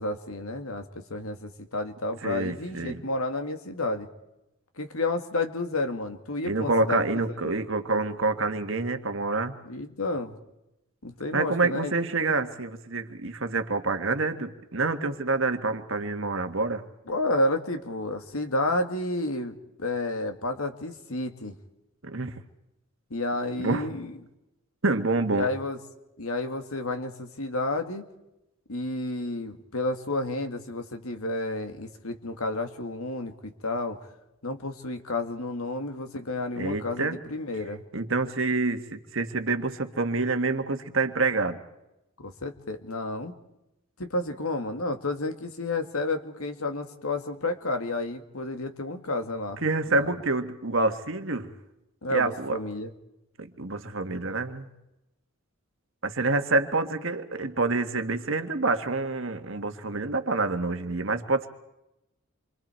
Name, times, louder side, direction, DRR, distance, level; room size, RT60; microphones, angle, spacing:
voice 1, 0.0-4.1 4.8-7.1 9.7-10.3 11.0-11.9 12.2-12.3 17.1-21.6 23.1-24.2 25.3-25.8 26.2-28.0 28.7-34.0 34.4-37.8 42.2-43.4 44.0-49.6 49.9-50.1 52.0-52.9, left 2 dB, 80° left, 7 dB, 2.0 m, -31 dB
voice 2, 2.2-3.0 6.4-9.6 11.3-16.8 22.0-22.3 23.6-23.9 24.8-25.5 36.6-37.1 37.9-41.6 49.6-51.5 52.1-52.6 53.4-54.7 56.0-61.5, right 3 dB, 60° right, 7 dB, 1.6 m, -27 dB
28.0 x 25.0 x 4.5 m, 0.92 s
head